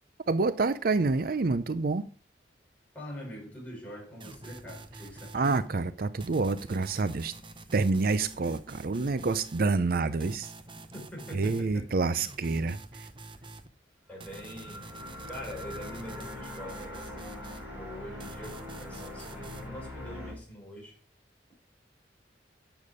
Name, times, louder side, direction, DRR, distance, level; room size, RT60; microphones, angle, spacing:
voice 1, 0.3-2.0 5.3-7.3 7.7-10.5 11.3-13.1, right 3 dB, 55° right, 0.5 m, -28 dB
voice 2, 2.9-5.7 10.9-11.9 14.1-14.9 15.3-17.4 17.7-21.0, equal, 10° left, 5.2 m, -44 dB
sound 1, 4.2-5.7 6.2-9.7 10.2-11.7 12.2-13.7 14.2-17.7 18.2-19.7, right 2 dB, 30° right, 0.9 m, -47 dB
sound 2, 14.2-20.3, left 1 dB, 10° right, 3.8 m, -42 dB
10.5 x 7.1 x 4.9 m
head